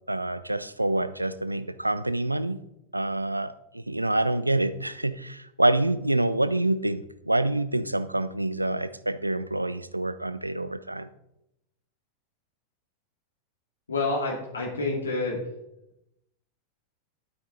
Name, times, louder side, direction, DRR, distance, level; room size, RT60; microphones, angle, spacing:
voice 1, 0.1-2.6 2.9-11.1, right 1 dB, 85° right, 15 dB, 0.5 m, -27 dB
voice 2, 13.9-15.5, left 3 dB, 75° left, -1 dB, 2.5 m, -28 dB
11.5 x 9.1 x 4.0 m, 0.86 s
figure-of-eight pair, 90°, 0 cm